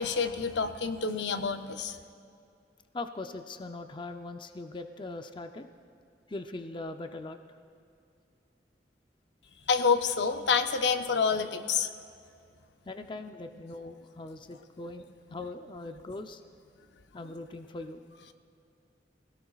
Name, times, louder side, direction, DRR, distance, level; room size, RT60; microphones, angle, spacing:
voice 1, 0.0-2.0 9.7-11.9, left 5 dB, 75° left, 8 dB, 0.6 m, -28 dB
voice 2, 2.9-5.7 6.3-7.6 12.9-16.4 17.1-18.0, left 2 dB, 30° left, 7 dB, 0.5 m, -41 dB
24.5 x 17.0 x 2.4 m, 2.5 s
head